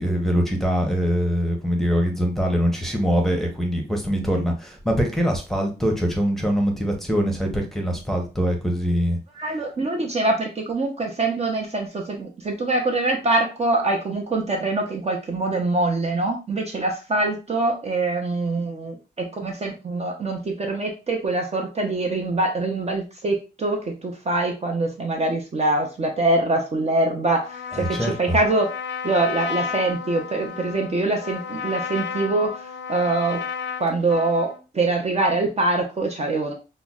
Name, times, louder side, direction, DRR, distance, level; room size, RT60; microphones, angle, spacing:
voice 1, 0.0-9.2 27.7-28.4, equal, ahead, 2 dB, 0.9 m, -23 dB
voice 2, 9.3-28.7 29.0-32.6 32.9-33.5 33.8-34.5 34.7-36.5, right 2 dB, 35° right, 1 dB, 0.7 m, -24 dB
Trumpet, 27.5-34.6, left 6 dB, 90° left, 0.4 m, -32 dB
5.7 x 2.1 x 2.3 m, 0.31 s
wide cardioid pair, 120°, 18 cm